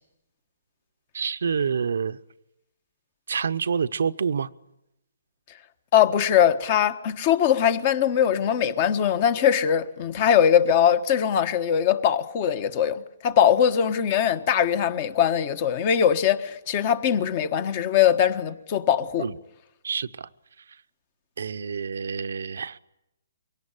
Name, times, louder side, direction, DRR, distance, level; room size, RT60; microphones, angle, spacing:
voice 1, 1.1-2.2 3.3-4.5 19.2-19.3 19.8-20.3 21.4-22.8, right 6 dB, 75° right, 0.8 m, -27 dB
voice 2, 5.9-19.3, left 9 dB, 35° left, 1.4 m, -21 dB
23.0 x 17.5 x 9.9 m
hypercardioid pair, 150°, 0 cm